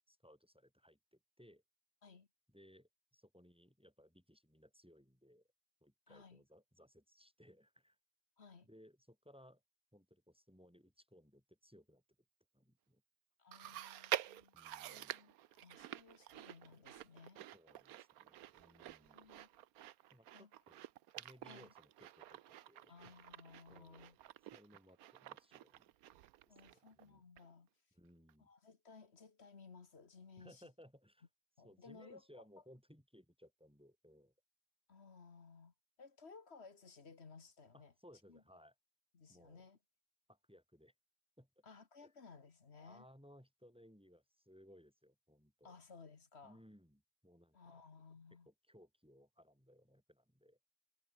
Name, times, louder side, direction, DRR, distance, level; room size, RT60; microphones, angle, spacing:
voice 1, 0.1-1.6 2.5-5.5 5.8-8.0 8.6-9.6 9.9-12.0 12.5-13.0 13.6-13.8 14.1-14.2 14.5-15.1 17.5-19.3 20.1-20.8 21.2-22.9 23.7-24.1 24.5-25.9 26.5-27.2 27.9-28.5 30.4-31.3 31.6-34.3 37.7-38.7 39.3-39.6 40.3-40.9 41.4-41.6 42.0-42.1 42.7-45.7 46.4-47.8 48.4-50.6, equal, ahead, 5.0 m, -64 dB
voice 2, 6.1-6.4 8.4-8.7 13.4-14.5 14.8-17.4 19.0-19.5 20.3-20.5 21.4-21.7 22.9-24.2 26.5-27.7 28.4-30.7 31.6-32.4 34.9-37.9 38.3-38.4 39.1-39.8 41.6-43.0 45.6-46.6 47.5-48.5, left 4 dB, 35° left, 1.6 m, -59 dB
Chewing mastication, 13.5-27.1 27.4-27.5 28.3-28.4, right 13 dB, 70° right, 0.9 m, -48 dB
omnidirectional pair, 2.2 m